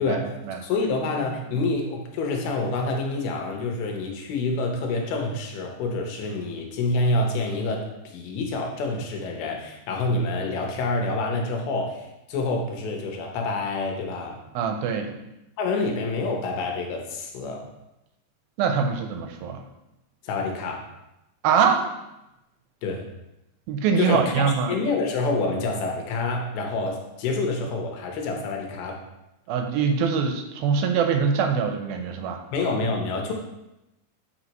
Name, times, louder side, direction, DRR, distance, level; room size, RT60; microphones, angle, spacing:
voice 1, 0.6-14.4 15.6-17.6 20.2-20.8 22.8-23.0 24.0-29.0 32.5-33.3, left 3 dB, 85° left, 2 dB, 2.9 m, -27 dB
voice 2, 14.5-15.1 18.6-19.6 21.4-21.9 23.7-24.8 29.5-32.4, right 6 dB, 80° right, 5 dB, 2.4 m, -23 dB
8.0 x 5.2 x 3.0 m, 0.92 s
omnidirectional pair, 4.3 m